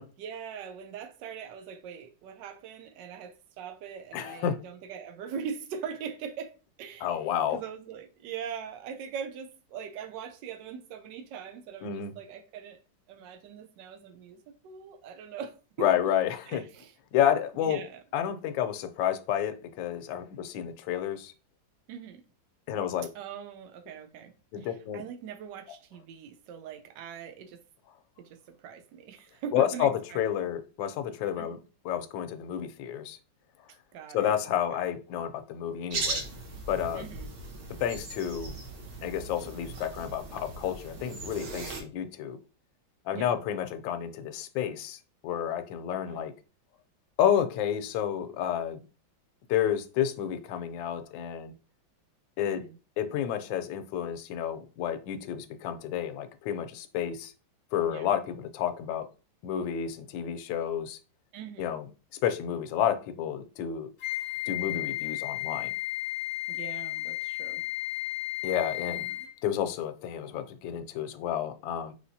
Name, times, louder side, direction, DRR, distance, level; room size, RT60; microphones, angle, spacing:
voice 1, 0.2-6.5 6.8-7.1 7.5-12.8 13.1-15.9 16.5-16.9 17.6-18.0 21.9-22.2 23.1-27.6 28.2-30.2 31.4-31.6 33.9-34.3 36.9-37.3 43.1-43.3 46.0-46.2 52.5-52.8 57.9-58.1 61.3-61.7 66.5-67.6 68.8-69.3, right 7 dB, 70° right, 1.2 m, -41 dB
voice 2, 4.1-4.6 7.0-7.6 11.8-12.1 15.8-16.6 17.1-17.8 18.1-21.3 22.7-23.1 24.5-25.0 29.5-31.6 31.8-33.2 34.1-36.2 36.7-37.1 37.8-38.5 39.0-42.4 43.0-46.3 47.2-48.8 49.5-51.5 52.4-52.6 53.0-57.3 57.7-59.1 59.4-61.0 61.6-61.9 62.2-63.9 64.5-65.7 68.4-69.1 69.4-71.9, left 9 dB, 80° left, 1.3 m, -30 dB
sound 1, 35.9-41.8, right 3 dB, 90° right, 1.9 m, -38 dB
Wind instrument woodwind instrument, 64.0-69.4, left 18 dB, 60° left, 1.0 m, -33 dB
4.9 x 3.4 x 2.7 m
omnidirectional pair, 2.2 m